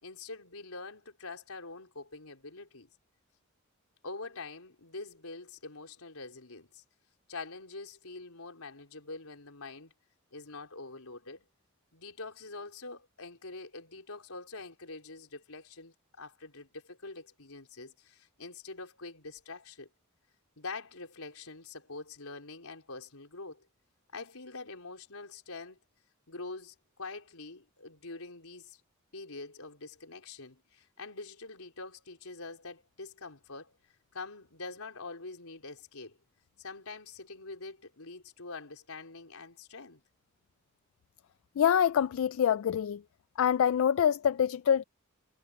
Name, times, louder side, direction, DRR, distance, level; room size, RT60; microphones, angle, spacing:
voice 1, 0.0-2.9 4.0-6.8 7.3-9.9 10.3-11.5 11.9-19.9 20.6-23.7 24.1-25.8 26.3-28.8 29.1-33.7 34.1-36.2 36.6-40.0, left 3 dB, 85° left, 4.1 m, -45 dB
voice 2, 41.6-43.0 43.4-44.8, left 8 dB, 65° left, 0.3 m, -25 dB
head